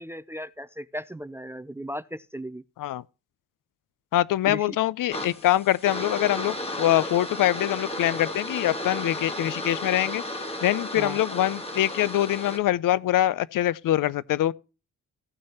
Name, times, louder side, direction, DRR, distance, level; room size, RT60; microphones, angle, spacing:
voice 1, 0.0-2.6 4.5-4.8 10.9-11.2, equal, 10° right, 0.3 m, -36 dB
voice 2, 4.1-10.2 10.6-14.5, left 13 dB, 75° left, 0.5 m, -24 dB
sound 1, 5.1-12.6, left 1 dB, 20° left, 1.7 m, -34 dB
16.0 x 6.4 x 2.8 m
cardioid pair, 100°, 32 cm